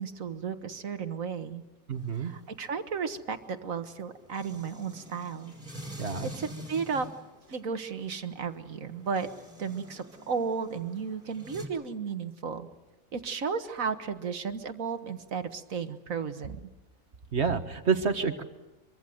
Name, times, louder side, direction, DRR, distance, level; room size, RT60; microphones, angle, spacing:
voice 1, 0.0-1.6 2.1-5.5 6.2-7.1 7.5-9.3 9.6-12.7 13.1-16.6, right 6 dB, 65° right, 9 dB, 1.8 m, -34 dB
sound 1, 1.9-11.7, equal, 25° right, 4.7 m, -47 dB
voice 2, 1.9-2.3 6.0-6.3 17.3-18.4, right 5 dB, 50° right, 8 dB, 1.8 m, -28 dB
25.0 x 23.5 x 7.8 m, 1.0 s
omnidirectional pair, 1.5 m